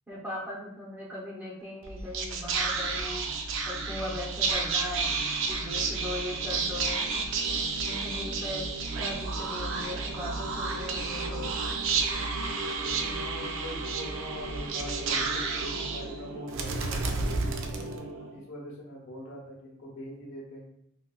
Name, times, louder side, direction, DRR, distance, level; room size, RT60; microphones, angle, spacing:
voice 1, 0.1-3.2 3.6-5.1 5.5-7.0 7.9-8.6 9.0-11.5, left 1 dB, 10° right, -6 dB, 0.7 m, -38 dB
Whispering, 1.8-18.4, right 4 dB, 60° right, 0.4 m, -31 dB
voice 2, 12.8-20.7, equal, 60° left, -3 dB, 0.9 m, -43 dB
3.7 x 2.3 x 2.3 m, 0.78 s
head